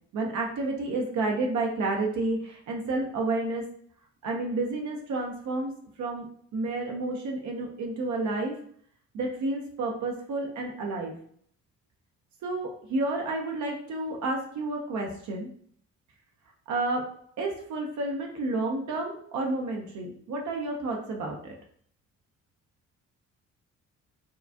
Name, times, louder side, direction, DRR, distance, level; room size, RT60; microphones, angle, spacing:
voice 1, 0.1-3.7 4.2-6.2 6.5-8.6 9.1-11.1 12.4-15.5 16.7-17.1 17.4-21.5, right 2 dB, 70° right, 1 dB, 0.8 m, -30 dB
4.6 x 2.4 x 2.7 m, 0.63 s
cardioid pair, 90°, 30 cm